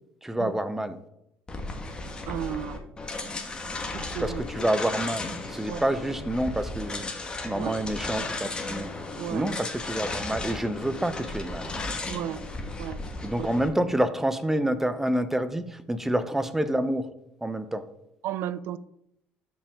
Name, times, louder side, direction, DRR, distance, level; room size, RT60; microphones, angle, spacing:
voice 1, 0.2-1.0 4.2-7.1 7.4-8.9 9.3-11.6 13.2-17.1 17.4-17.8, right 1 dB, 10° right, 0.8 m, -28 dB
sound 1, 1.5-13.7, left 2 dB, 20° left, 1.5 m, -35 dB
voice 2, 2.3-2.8 3.9-4.4 5.7-5.8 7.6-7.7 9.2-9.5 12.1-12.5 12.8-13.0 18.2-18.8, right 11 dB, 70° right, 0.5 m, -33 dB
12.0 x 5.5 x 3.6 m
cardioid pair, 105°, 4 cm